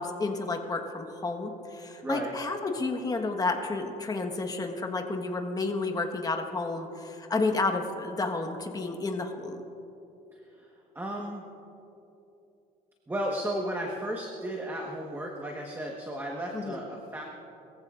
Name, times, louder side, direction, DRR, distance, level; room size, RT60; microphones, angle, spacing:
voice 1, 0.0-9.6 16.5-16.8, left 3 dB, 20° left, 4 dB, 1.4 m, -31 dB
voice 2, 2.0-2.3 10.3-11.4 13.1-17.2, right 1 dB, 10° right, 0 dB, 1.4 m, -34 dB
22.0 x 15.0 x 2.5 m, 2.9 s
cardioid pair, 110°, 17 cm